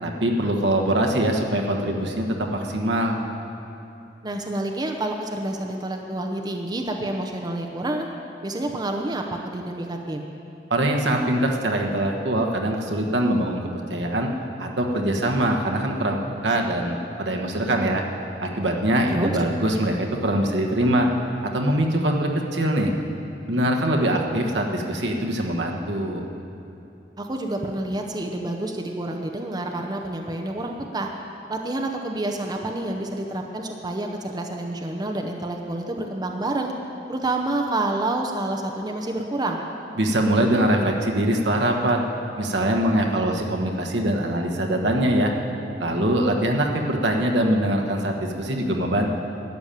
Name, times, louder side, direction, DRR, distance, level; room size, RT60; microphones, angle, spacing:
voice 1, 0.0-2.3 2.5-3.2 10.7-13.6 13.9-14.3 14.6-18.0 18.4-21.1 21.5-22.9 23.5-26.2 40.0-42.0 42.4-45.3 45.8-49.1, right 1 dB, 70° right, 1 dB, 1.3 m, -23 dB
voice 2, 4.2-8.1 8.4-10.3 19.1-19.3 27.2-31.1 31.5-36.7 37.1-39.6, right 2 dB, 25° right, 2 dB, 0.7 m, -28 dB
12.0 x 7.1 x 9.1 m, 2.8 s
head